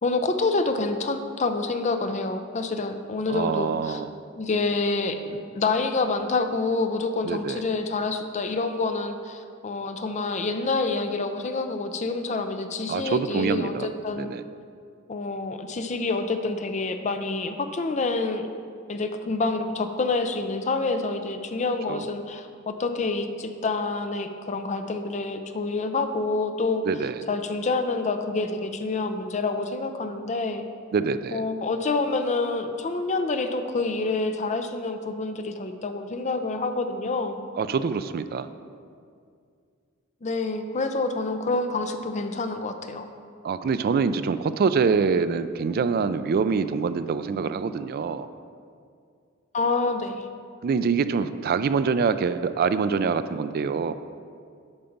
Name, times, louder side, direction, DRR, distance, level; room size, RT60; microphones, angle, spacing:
voice 1, 0.0-4.0 4.4-14.3 15.1-18.5 18.9-26.9 27.3-30.6 31.3-37.4 40.2-43.1 49.5-50.3, left 3 dB, 35° left, 7 dB, 0.5 m, -27 dB
voice 2, 3.3-4.1 7.2-7.6 12.9-13.9 14.2-14.4 21.9-22.0 26.9-27.2 30.9-31.4 37.6-38.5 43.4-48.3 50.6-53.9, right 5 dB, 45° right, 12 dB, 0.3 m, -25 dB
8.7 x 5.3 x 5.8 m, 2.2 s
head